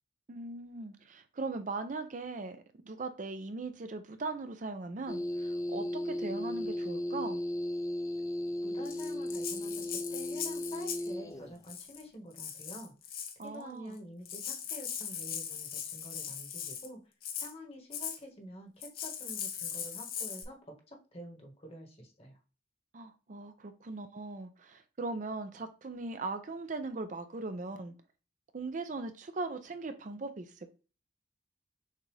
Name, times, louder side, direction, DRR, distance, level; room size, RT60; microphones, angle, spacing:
voice 1, 0.3-7.4 13.4-14.0 22.9-27.9 28.5-30.7, right 3 dB, 45° right, 0.5 m, -39 dB
sound 1, 5.1-11.6, left 1 dB, 20° left, 0.4 m, -35 dB
voice 2, 8.6-12.9 13.4-17.0 17.4-22.4, equal, 35° left, 1.3 m, -48 dB
Rattle (instrument), 8.9-11.1 11.6-12.0 12.4-13.4 14.0-14.1 14.3-16.9 17.2-17.5 17.9-18.2 18.8-20.4, left 8 dB, 55° left, 0.8 m, -39 dB
6.5 x 2.4 x 3.2 m
head